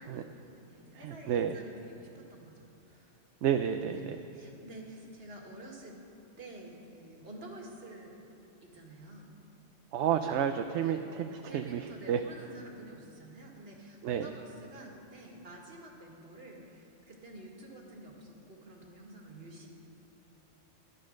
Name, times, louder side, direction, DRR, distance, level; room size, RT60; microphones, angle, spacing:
voice 1, 0.0-3.2 3.9-5.9 6.4-8.2 8.6-9.4 10.1-10.4 10.8-11.1 11.5-19.7, right 1 dB, 55° right, -1 dB, 2.1 m, -49 dB
voice 2, 0.9-1.6 3.4-4.2 9.9-12.2 14.0-14.3, right 9 dB, 75° right, 7 dB, 0.9 m, -31 dB
14.5 x 11.0 x 6.4 m, 2.8 s
omnidirectional pair, 1.3 m